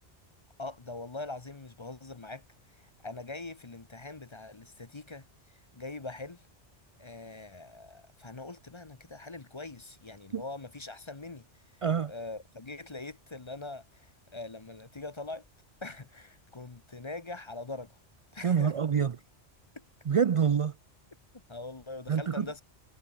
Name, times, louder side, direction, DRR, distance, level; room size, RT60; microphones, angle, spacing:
voice 1, 0.6-2.4 2.7-6.4 7.0-11.5 12.1-15.4 15.8-18.0 18.3-18.7 19.7-19.8 21.5-22.6, left 2 dB, 25° left, 0.9 m, -42 dB
voice 2, 11.8-12.1 18.4-19.2 20.1-20.7 22.1-22.5, right 7 dB, 50° right, 0.4 m, -26 dB
omnidirectional pair, 1.2 m